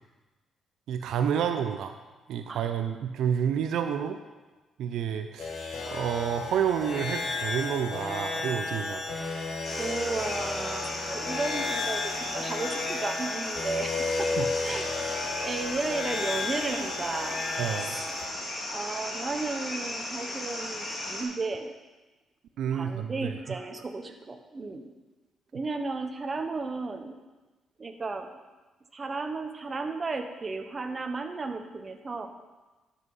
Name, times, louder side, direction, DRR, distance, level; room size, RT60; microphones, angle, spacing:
voice 1, 0.9-2.0 2.3-4.2 4.8-5.5 5.9-9.2 14.4-14.5 17.6-18.0 22.6-23.3, right 8 dB, 80° right, 7 dB, 0.5 m, -29 dB
sound 1, 5.4-18.3, left 3 dB, 55° left, 1.7 m, -33 dB
sound 2, 9.6-21.2, left 1 dB, 40° left, 2.6 m, -36 dB
voice 2, 9.7-14.3 14.6-17.4 17.9-18.1 18.7-21.7 22.7-24.9 25.5-27.2 27.8-28.3 28.9-32.3, right 3 dB, 30° right, 6 dB, 1.0 m, -34 dB
11.0 x 5.8 x 5.5 m, 1.2 s
cardioid pair, 90°, 0 cm